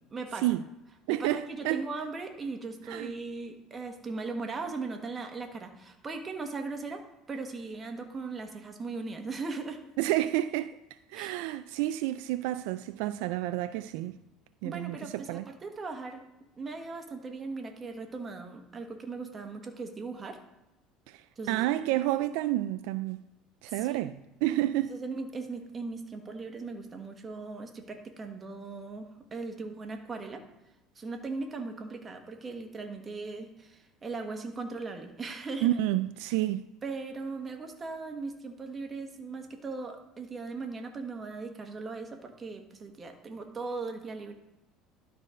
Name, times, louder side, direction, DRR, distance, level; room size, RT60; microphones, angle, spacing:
voice 1, 0.1-0.5 1.1-9.8 11.1-11.4 14.6-16.2 16.6-20.4 21.4-21.7 23.7-24.0 24.9-30.4 30.9-35.8 36.8-44.3, right 3 dB, 30° right, 1.4 m, -38 dB
voice 2, 1.1-1.9 2.9-3.1 10.0-10.8 11.1-14.2 14.6-15.4 21.1-23.2 23.6-24.1 24.4-24.9 35.6-36.6, right 15 dB, 80° right, 0.3 m, -30 dB
12.0 x 4.2 x 5.1 m
supercardioid pair, 105°, 0 cm